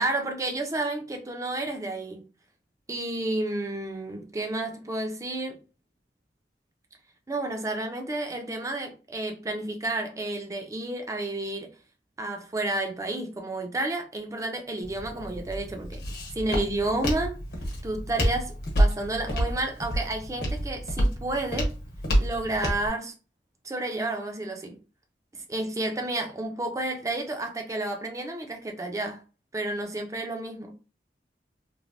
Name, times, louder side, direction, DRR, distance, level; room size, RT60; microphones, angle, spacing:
voice 1, 0.0-2.2 2.9-5.6 7.3-11.7 12.2-16.0 16.3-17.4 17.8-21.7 22.2-23.1 23.6-24.8 25.3-29.2 29.5-30.7, right 2 dB, 20° right, 0.5 m, -31 dB
Walk footsteps, 14.8-22.9, equal, 60° left, 1.1 m, -28 dB
3.2 x 2.1 x 2.5 m
head